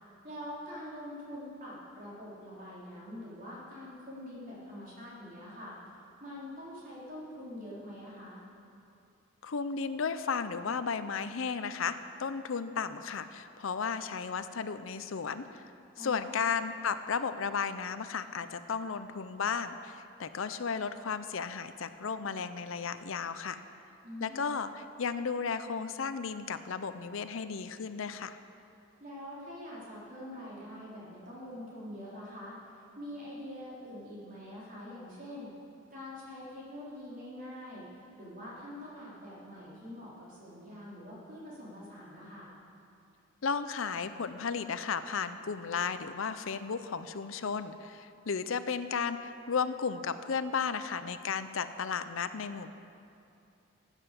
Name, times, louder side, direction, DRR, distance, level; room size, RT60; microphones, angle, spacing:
voice 1, 0.2-5.7 6.2-8.4 16.0-16.4 24.0-24.5 29.0-35.5 35.9-42.5, left 1 dB, 40° right, -7 dB, 4.0 m, -45 dB
voice 2, 9.4-15.6 16.0-23.6 24.2-28.4 43.4-52.7, left 5 dB, 75° left, 11 dB, 0.6 m, -34 dB
15.5 x 9.1 x 6.7 m, 2.7 s
head